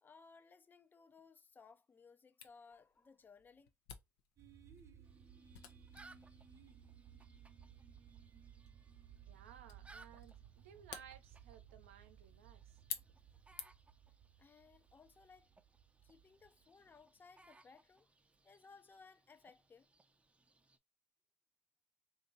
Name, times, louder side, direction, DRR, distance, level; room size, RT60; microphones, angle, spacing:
voice 1, 0.0-3.7 14.4-15.5 16.0-18.1 18.4-19.9, left 5 dB, 30° left, 0.6 m, -62 dB
Camera, 2.4-14.0, left 9 dB, 75° left, 0.6 m, -54 dB
sound 1, 4.4-17.3, right 8 dB, 45° right, 0.8 m, -60 dB
sound 2, 5.0-20.8, right 3 dB, 20° right, 0.6 m, -66 dB
voice 2, 9.3-12.8, right 8 dB, 85° right, 0.7 m, -59 dB
3.0 x 2.6 x 3.8 m
hypercardioid pair, 60°, 7 cm